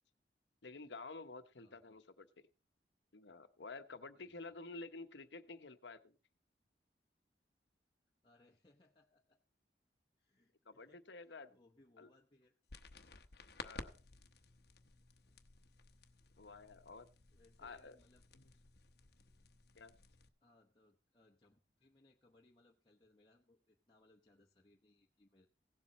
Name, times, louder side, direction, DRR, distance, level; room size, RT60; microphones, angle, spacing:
voice 1, 0.6-2.3 3.1-6.1 10.6-11.5 12.0-12.1 13.6-14.0 16.4-17.1 17.6-18.0 18.3-18.5 19.8-20.0, left 3 dB, 85° left, 10 dB, 1.0 m, -51 dB
voice 2, 1.6-2.0 4.1-4.6 8.2-9.4 10.2-12.6 15.2-15.4 17.3-18.2 20.4-25.5, left 2 dB, 25° left, -2 dB, 1.0 m, -70 dB
sound 1, 12.7-20.3, left 3 dB, 60° left, 0.9 m, -55 dB
16.5 x 7.6 x 4.1 m, 0.35 s
head